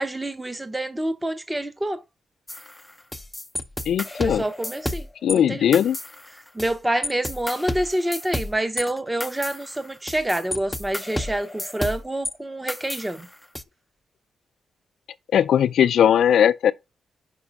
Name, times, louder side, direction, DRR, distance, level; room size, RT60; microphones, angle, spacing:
voice 1, 0.0-2.0 4.2-5.6 6.5-13.3, right 1 dB, 10° right, 0.8 m, -27 dB
sound 1, 2.5-5.4 5.7-6.7 7.0-12.3 12.7-13.6, left 1 dB, 10° left, 0.5 m, -32 dB
voice 2, 3.9-4.4 5.2-6.0 15.3-16.7, left 9 dB, 80° left, 0.4 m, -19 dB
5.3 x 4.9 x 4.7 m
cardioid pair, 125°, 0 cm